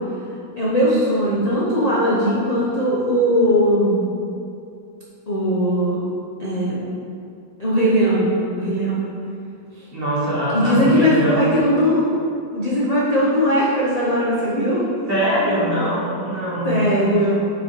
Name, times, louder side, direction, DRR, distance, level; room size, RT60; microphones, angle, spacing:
voice 1, 0.6-4.0 5.3-6.1 6.4-6.8 7.6-9.0 9.8-9.9 10.5-12.2 12.5-14.9 16.6-17.3, equal, 40° left, -7 dB, 0.6 m, -19 dB
voice 2, 9.9-11.5 15.1-17.3, equal, 30° right, -8 dB, 1.6 m, -22 dB
6.1 x 4.6 x 4.5 m, 2.5 s
omnidirectional pair, 2.0 m